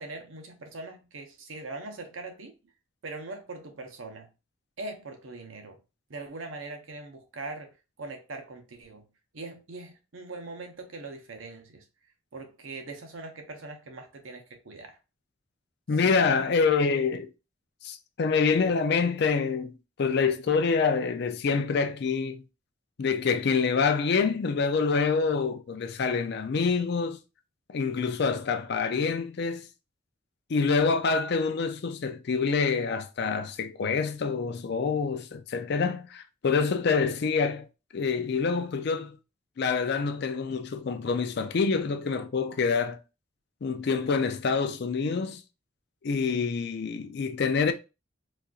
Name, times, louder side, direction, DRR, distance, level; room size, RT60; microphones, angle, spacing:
voice 1, 0.0-2.5 3.0-4.3 4.8-5.8 6.1-7.7 8.0-9.0 9.3-11.8 12.3-15.0 16.0-16.2, right 3 dB, 85° right, 0.8 m, -41 dB
voice 2, 15.9-17.3 17.8-22.4 23.0-27.2 27.7-29.7 30.5-37.7 37.9-39.2 39.6-43.0 43.6-45.4 46.0-47.7, left 5 dB, 55° left, 0.4 m, -26 dB
4.1 x 2.4 x 2.4 m
head